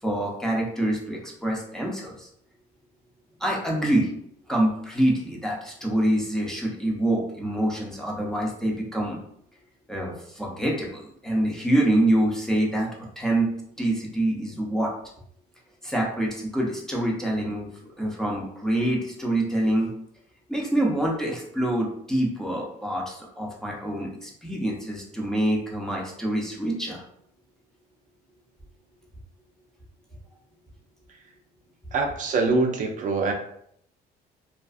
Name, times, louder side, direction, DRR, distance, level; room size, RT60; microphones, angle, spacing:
voice 1, 0.0-2.3 3.4-4.1 4.5-9.2 9.9-12.9 13.2-13.5 13.8-14.9 15.8-17.7 18.0-19.9 20.5-27.0, right 1 dB, 5° left, -3 dB, 0.6 m, -26 dB
voice 2, 31.9-33.3, right 3 dB, 50° right, 2 dB, 0.4 m, -24 dB
2.4 x 2.3 x 2.4 m, 0.69 s
cardioid pair, 110°, 17 cm